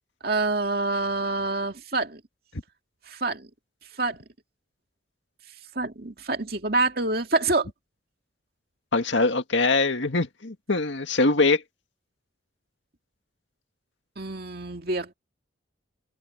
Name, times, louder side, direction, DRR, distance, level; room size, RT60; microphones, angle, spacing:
voice 1, 0.2-2.2 3.1-3.5 4.0-4.2 5.8-7.7 14.2-15.1, right 3 dB, 50° right, 2.4 m, -26 dB
voice 2, 8.9-11.6, left 3 dB, 75° left, 2.0 m, -23 dB
head